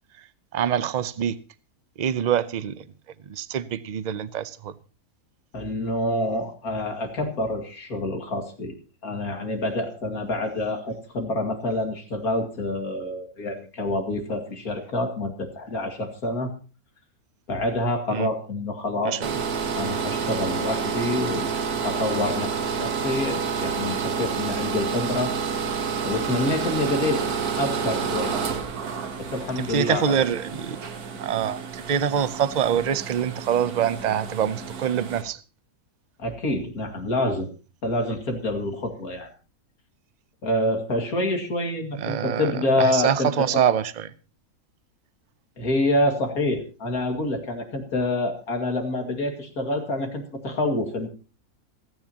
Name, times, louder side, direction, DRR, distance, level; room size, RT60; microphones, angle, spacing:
voice 1, 0.5-1.4 2.0-2.8 3.3-4.7 18.1-18.3 19.0-19.3 29.6-30.8 31.2-35.4 41.9-44.1, right 8 dB, 45° right, 0.5 m, -25 dB
voice 2, 5.5-8.7 9.0-16.5 17.5-19.2 19.8-21.6 21.8-22.5 22.8-25.4 26.0-27.2 27.6-28.4 29.2-30.2 36.2-37.5 37.8-39.3 40.4-43.6 45.6-51.1, left 1 dB, 75° left, 2.7 m, -27 dB
sound 1, 19.2-35.2, right 6 dB, 85° right, 1.7 m, -29 dB
27.5 x 9.6 x 2.9 m
omnidirectional pair, 1.6 m